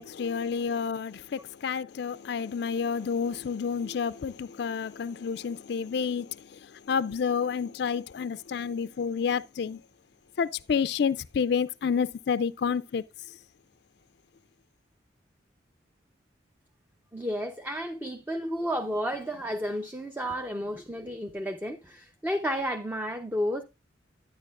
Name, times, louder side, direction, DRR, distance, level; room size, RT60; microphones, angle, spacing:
voice 1, 0.0-6.3 6.9-9.8 10.4-13.0, left 6 dB, 60° left, 0.4 m, -29 dB
voice 2, 17.1-23.6, equal, 10° right, 0.6 m, -32 dB
11.0 x 9.5 x 2.4 m
head